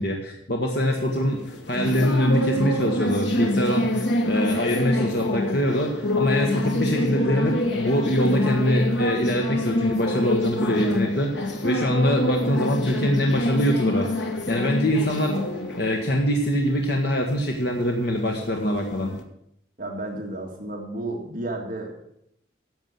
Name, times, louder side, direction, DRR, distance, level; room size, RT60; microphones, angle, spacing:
voice 1, 0.0-15.4 15.7-19.1, equal, 60° left, 1 dB, 1.4 m, -24 dB
sound 1, 0.8-19.2, left 1 dB, 75° left, 1.5 m, -27 dB
voice 2, 19.8-22.1, right 2 dB, 45° right, 0 dB, 1.9 m, -32 dB
11.0 x 7.4 x 7.6 m, 0.75 s
head